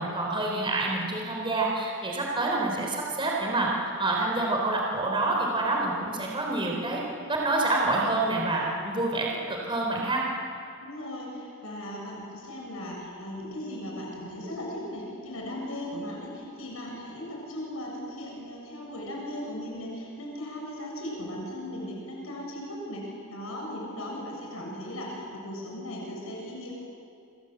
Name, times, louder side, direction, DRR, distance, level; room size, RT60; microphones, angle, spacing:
voice 1, 0.0-3.7 4.0-7.0 7.3-10.2, right 2 dB, 25° right, -1 dB, 3.8 m, -27 dB
voice 2, 10.8-26.7, left 1 dB, 70° left, -1 dB, 7.1 m, -37 dB
28.0 x 26.5 x 8.1 m, 2.6 s
head